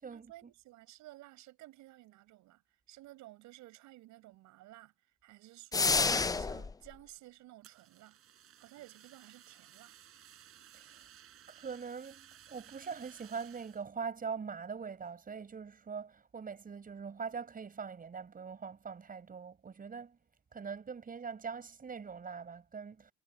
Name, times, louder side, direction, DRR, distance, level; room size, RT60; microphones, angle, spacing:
voice 1, 0.1-2.6 2.9-4.9 5.2-8.2 8.6-9.9, right 17 dB, 75° right, 6.4 m, -54 dB
sound 1, 5.7-6.7, left 4 dB, 15° left, 0.4 m, -29 dB
Fire, 7.6-13.8, right 10 dB, 50° right, 4.6 m, -58 dB
voice 2, 11.5-20.2 20.5-23.1, right 6 dB, 30° right, 5.9 m, -42 dB
cardioid pair, 125°, 29 cm